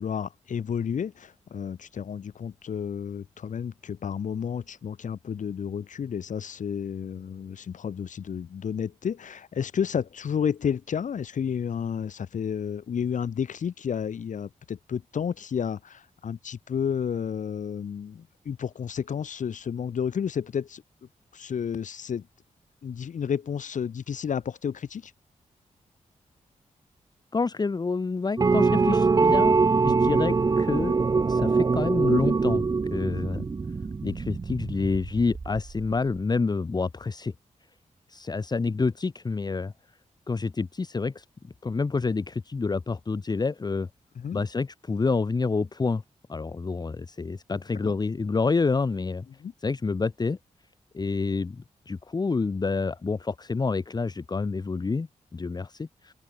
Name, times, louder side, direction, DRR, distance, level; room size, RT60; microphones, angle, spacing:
voice 1, 0.0-20.8 21.3-22.3 22.8-25.1 44.2-44.4 47.8-48.0 49.4-49.5, left 7 dB, 70° left, 3.7 m, -31 dB
voice 2, 27.3-29.6 29.8-31.0 31.3-32.6 32.9-33.5 34.0-37.3 38.1-39.7 40.3-41.2 41.6-43.9 44.3-46.0 46.3-49.3 49.6-50.4 50.9-56.1, left 4 dB, 30° left, 1.3 m, -28 dB
sound 1, 28.4-35.9, right 4 dB, 30° right, 0.5 m, -23 dB
open air
wide cardioid pair, 110°, 13 cm